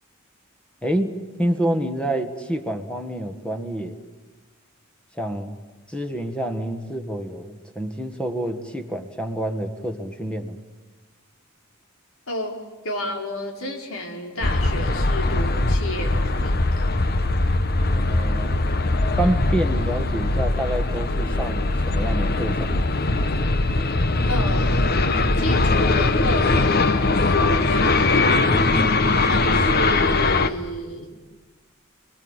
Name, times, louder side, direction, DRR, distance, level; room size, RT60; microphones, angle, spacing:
voice 1, 0.8-4.0 5.1-5.6 5.9-10.6 17.9-18.6 19.2-22.9, right 1 dB, 5° left, 7 dB, 1.7 m, -27 dB
voice 2, 12.3-12.6 12.8-16.9 24.3-24.9 25.3-27.3 27.6-28.5 29.2-31.2, left 1 dB, 75° left, 2 dB, 4.6 m, -31 dB
sound 1, 14.4-30.5, left 2 dB, 45° left, 1.2 m, -21 dB
30.0 x 20.5 x 9.0 m, 1.2 s
head